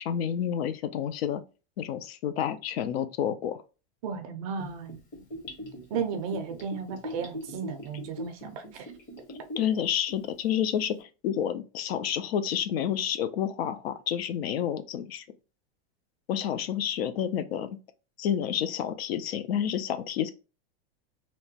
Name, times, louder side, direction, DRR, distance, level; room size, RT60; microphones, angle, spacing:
voice 1, 0.0-1.4 1.8-3.6 9.3-15.2 16.3-17.7 18.2-20.3, left 9 dB, 65° left, 0.5 m, -29 dB
voice 2, 4.0-5.0 5.9-8.9, right 6 dB, 35° right, 0.4 m, -34 dB
Gurgling / Bathtub (filling or washing), 4.6-9.7 10.1-10.2, left 1 dB, 35° left, 1.1 m, -40 dB
2.9 x 2.2 x 2.7 m
supercardioid pair, 160°, 33 cm